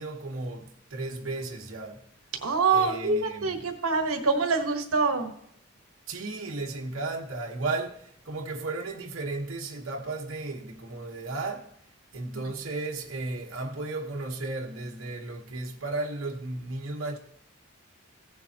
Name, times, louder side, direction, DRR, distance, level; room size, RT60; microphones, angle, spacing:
voice 1, 0.0-2.0 2.7-3.7 6.1-11.7 12.1-17.2, right 2 dB, 70° right, 1.3 m, -34 dB
voice 2, 2.4-5.3, right 4 dB, 85° right, 1.3 m, -25 dB
16.0 x 7.1 x 2.9 m
head